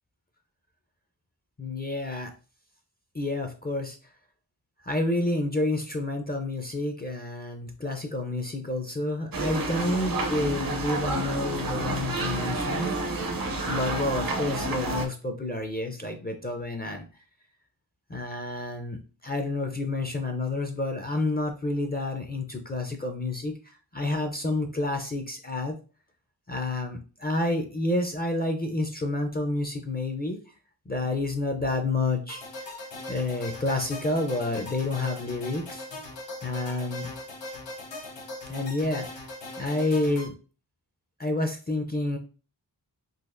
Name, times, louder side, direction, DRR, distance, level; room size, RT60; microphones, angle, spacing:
voice 1, 1.6-2.3 3.1-4.0 4.8-12.9 13.7-17.1 18.1-25.8 26.5-30.4 30.9-32.4 33.1-35.9 36.4-37.1 38.5-39.3 39.6-40.4 41.2-42.2, left 2 dB, 25° left, 4 dB, 0.4 m, -29 dB
sound 1, 9.3-15.1, right 2 dB, 55° right, 0.6 m, -29 dB
sound 2, 32.3-40.3, left 2 dB, 80° left, 0.7 m, -40 dB
3.9 x 2.4 x 2.4 m, 0.35 s
wide cardioid pair, 75°, 43 cm